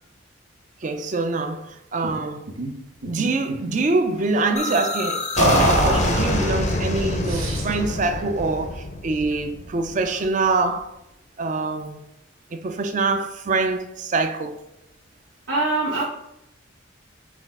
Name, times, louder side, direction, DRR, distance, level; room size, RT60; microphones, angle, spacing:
voice 1, 0.8-2.5 3.1-10.9 11.4-12.0 12.5-14.6, right 3 dB, 40° right, 0.4 m, -25 dB
sound 1, 2.0-2.2 2.5-2.7 3.0-3.8 5.4-6.6 7.2-7.9, right 1 dB, 90° right, 1.0 m, -24 dB
sound 2, 4.6-10.3, left 2 dB, 35° left, 0.5 m, -26 dB
voice 2, 15.5-16.0, right 2 dB, 55° right, 0.8 m, -22 dB
5.9 x 2.3 x 3.6 m
head